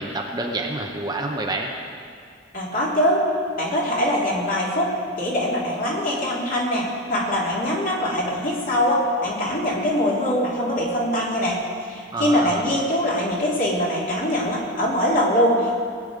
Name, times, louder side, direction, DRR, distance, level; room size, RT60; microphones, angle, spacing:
voice 1, 0.0-1.7 12.1-12.6, right 2 dB, 20° right, 1 dB, 0.9 m, -28 dB
voice 2, 2.5-3.2 3.6-4.9 5.2-11.6 11.9-15.8, equal, 45° left, -4 dB, 3.1 m, -22 dB
20.5 x 9.1 x 5.2 m, 2.2 s
head